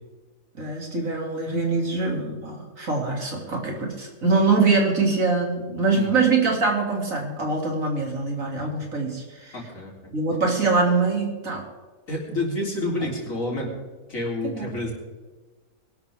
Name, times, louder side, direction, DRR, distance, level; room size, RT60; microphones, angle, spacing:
voice 1, 0.5-9.6 10.1-11.6 13.0-13.1 14.4-14.7, right 4 dB, 60° right, 0 dB, 3.2 m, -24 dB
voice 2, 9.5-9.9 12.1-13.7 14.1-14.9, left 2 dB, 60° left, -2 dB, 4.1 m, -28 dB
22.0 x 12.0 x 3.6 m, 1.3 s
omnidirectional pair, 1.6 m